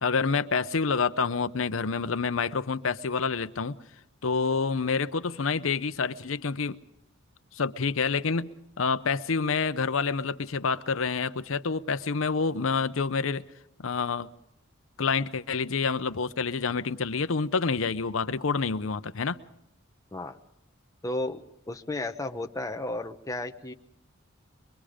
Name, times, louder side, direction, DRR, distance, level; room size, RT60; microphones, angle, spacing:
voice 1, 0.0-3.8 4.2-6.8 7.5-8.5 8.8-13.4 13.8-14.3 15.0-19.4, left 5 dB, 75° left, 12 dB, 0.8 m, -28 dB
voice 2, 21.0-23.7, left 2 dB, 15° left, 5 dB, 0.8 m, -33 dB
24.0 x 22.5 x 5.0 m, 0.78 s
head